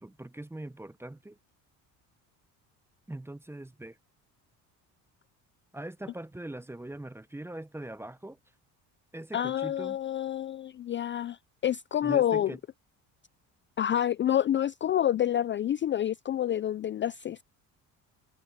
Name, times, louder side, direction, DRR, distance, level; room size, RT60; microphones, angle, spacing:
voice 1, 0.0-1.4 3.1-4.0 5.7-8.4 9.1-10.0 12.0-12.6, right 1 dB, 5° right, 0.6 m, -41 dB
voice 2, 9.3-11.4 11.6-12.5 13.8-17.4, left 10 dB, 30° left, 0.4 m, -28 dB
cardioid pair, 95°, 38 cm